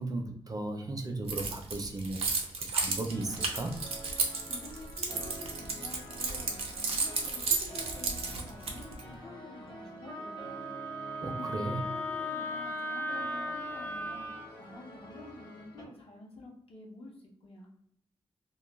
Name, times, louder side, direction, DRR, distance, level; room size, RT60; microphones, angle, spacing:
voice 1, 0.0-2.2 2.7-3.7 11.2-11.8, right 2 dB, 40° right, 4 dB, 0.5 m, -35 dB
Keys jangling, 1.3-9.0, right 4 dB, 85° right, 0.5 m, -32 dB
sound 1, 3.1-15.8, equal, 45° left, 0.8 m, -48 dB
voice 2, 4.4-10.6 11.2-14.3 14.6-17.1 17.4-17.7, left 2 dB, 75° left, -2 dB, 0.7 m, -49 dB
Wind instrument woodwind instrument, 10.1-14.5, left 1 dB, 20° left, 0.4 m, -37 dB
2.3 x 2.1 x 3.0 m, 0.73 s
wide cardioid pair, 85°, 10 cm